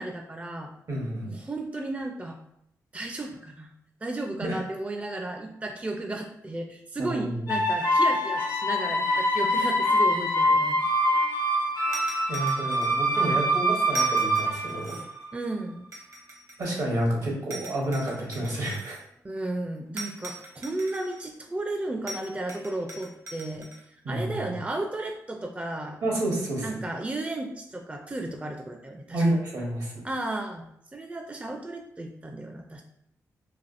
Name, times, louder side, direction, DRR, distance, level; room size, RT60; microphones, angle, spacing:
voice 1, 0.0-0.7 1.2-2.4 2.9-3.7 4.0-10.8 15.3-15.8 19.2-23.7 24.1-26.0 26.6-29.2 30.0-30.6 30.9-32.8, right 2 dB, 20° right, 3 dB, 0.4 m, -34 dB
voice 2, 0.9-1.3 4.4-4.6 7.0-7.4 12.3-15.0 16.6-19.0 24.0-24.3 26.0-26.8 29.1-30.0, right 1 dB, 70° right, -2 dB, 1.1 m, -29 dB
sound 1, 7.5-15.4, equal, 85° left, 0.9 m, -24 dB
sound 2, 11.9-13.2 13.9-15.2 15.9-17.0 17.5-19.0 20.0-21.3 22.1-23.8, right 2 dB, 50° right, 0.8 m, -40 dB
3.3 x 2.4 x 2.5 m, 0.75 s
supercardioid pair, 45°, 7 cm